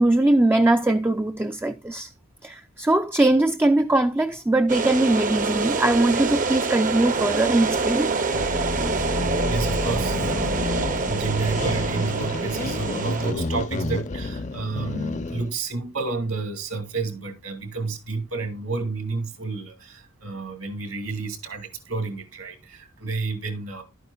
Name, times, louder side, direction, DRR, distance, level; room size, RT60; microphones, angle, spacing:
voice 1, 0.0-2.1 2.4-8.1, right 2 dB, 10° right, 0.4 m, -21 dB
sound 1, 4.7-13.3, right 4 dB, 40° right, 0.7 m, -26 dB
sound 2, 8.3-15.5, left 2 dB, 35° left, 0.6 m, -30 dB
voice 2, 9.5-10.7 11.1-23.8, right 3 dB, 75° right, 2.3 m, -30 dB
11.5 x 9.2 x 2.3 m
head